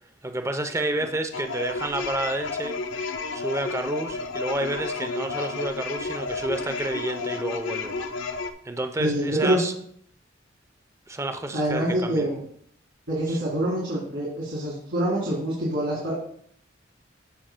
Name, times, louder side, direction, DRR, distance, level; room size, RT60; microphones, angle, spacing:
voice 1, 0.2-2.8 3.3-7.9 8.6-9.7 11.1-12.2 13.3-13.4, right 1 dB, 15° right, 7 dB, 0.6 m, -30 dB
sound 1, 1.3-8.5, left 4 dB, 85° left, 0.6 m, -31 dB
voice 2, 9.0-9.6 11.5-12.4 13.1-16.1, right 1 dB, 70° right, -6 dB, 2.1 m, -25 dB
13.5 x 5.4 x 2.2 m, 0.64 s
head